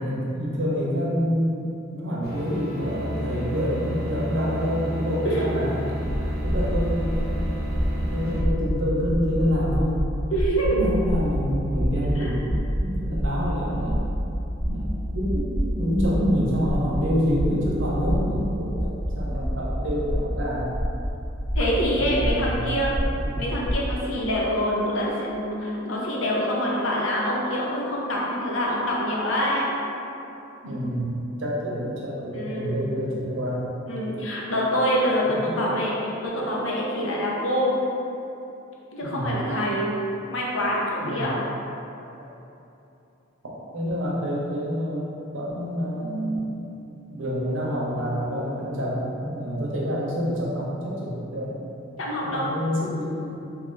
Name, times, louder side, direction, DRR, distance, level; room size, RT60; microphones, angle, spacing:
voice 1, 0.0-5.8 6.4-7.1 7.9-10.0 10.7-14.0 14.6-18.9 19.2-20.8 21.8-22.8 23.2-23.4 30.6-31.1 31.4-33.7 35.3-35.5 39.0-39.4 41.0-41.3 43.7-45.0 45.3-46.5 47.1-51.5 52.2-53.3, equal, 70° right, -5 dB, 0.8 m, -27 dB
sound 1, 2.2-8.4, equal, 55° left, 1.1 m, -31 dB
sound 2, 6.0-23.9, equal, 10° left, 0.8 m, -28 dB
voice 2, 10.3-10.8 12.2-12.3 21.6-22.9 23.4-29.8 32.3-32.8 33.9-37.7 38.9-39.9 40.3-41.4 52.0-52.5, equal, 70° left, -4 dB, 0.7 m, -25 dB
3.0 x 2.5 x 3.7 m, 2.9 s
head